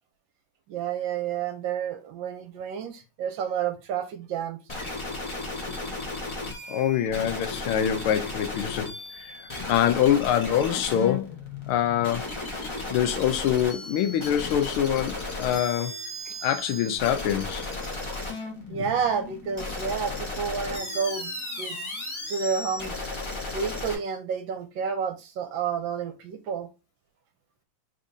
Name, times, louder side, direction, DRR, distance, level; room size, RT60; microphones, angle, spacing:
voice 1, 0.7-4.6 18.7-21.8 22.3-23.0 23.5-26.7, right 7 dB, 70° right, 1.3 m, -30 dB
sound 1, 4.7-23.9, left 2 dB, 30° left, 0.5 m, -35 dB
voice 2, 6.7-9.4 9.7-11.3 11.7-12.3 12.9-15.9 16.4-17.7 18.7-18.8, left 10 dB, 80° left, 1.5 m, -25 dB
5.4 x 3.5 x 2.6 m
omnidirectional pair, 2.3 m